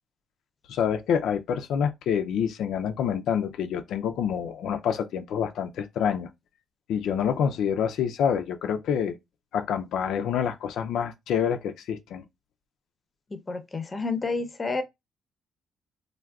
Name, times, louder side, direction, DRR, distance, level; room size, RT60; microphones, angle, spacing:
voice 1, 0.7-6.3 6.9-9.2 9.5-12.2, left 8 dB, 80° left, 0.3 m, -27 dB
voice 2, 13.3-14.8, left 3 dB, 25° left, 0.5 m, -30 dB
3.4 x 2.1 x 2.3 m
cardioid pair, 90°, 0 cm